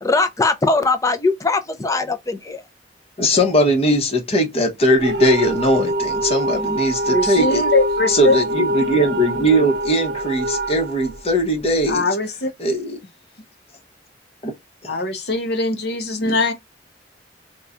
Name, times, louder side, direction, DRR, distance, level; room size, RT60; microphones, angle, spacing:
voice 1, 0.0-2.6, left 3 dB, 20° left, 0.4 m, -20 dB
voice 2, 3.2-7.6 8.1-12.2 12.6-13.0 14.4-14.5 14.8-14.9, equal, 35° left, 0.9 m, -19 dB
sound 1, 5.0-11.9, right 1 dB, 80° right, 0.5 m, -24 dB
voice 3, 7.1-8.3 11.9-12.5 14.9-16.5, left 2 dB, 65° left, 0.7 m, -21 dB
4.1 x 2.3 x 2.4 m
head